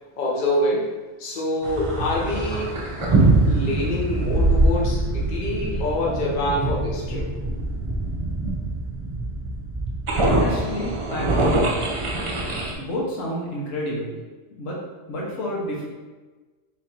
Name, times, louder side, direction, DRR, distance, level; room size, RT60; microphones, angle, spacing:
voice 1, 0.2-2.8 3.4-7.3, left 1 dB, 45° left, -5 dB, 0.9 m, -26 dB
sound 1, 1.6-12.7, right 2 dB, 45° right, 0.4 m, -23 dB
voice 2, 10.2-11.8 12.7-14.2 14.6-14.8 15.1-15.9, left 1 dB, 75° left, -4 dB, 1.3 m, -29 dB
3.9 x 2.6 x 4.3 m, 1.3 s
omnidirectional pair, 1.3 m